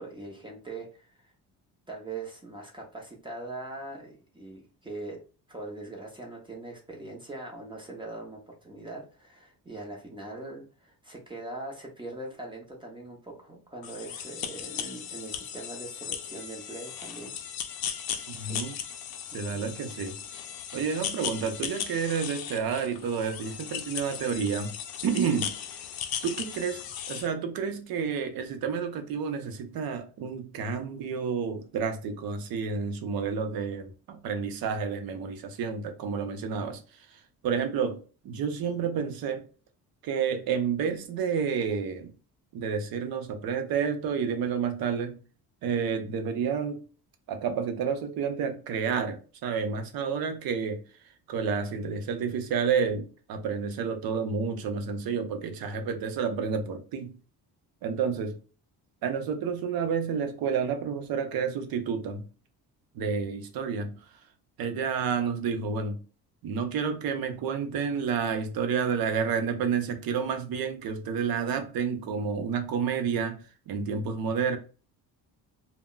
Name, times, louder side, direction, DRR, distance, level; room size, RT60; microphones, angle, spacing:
voice 1, 0.0-1.3 1.9-5.2 5.5-17.3 18.1-18.6 19.3-19.6, right 2 dB, 15° right, 0.5 m, -41 dB
sound 1, 13.8-27.3, left 9 dB, 65° left, 0.5 m, -37 dB
voice 2, 18.3-18.7 19.3-20.2 20.7-24.7 25.0-25.5 26.2-26.8 27.1-39.4 40.0-42.1 42.5-45.2 45.6-46.8 47.3-57.2 57.8-58.4 59.0-62.3 62.9-64.2 64.6-66.0 66.4-74.6, right 6 dB, 70° right, 0.7 m, -30 dB
2.2 x 2.1 x 3.7 m
cardioid pair, 160°, 38 cm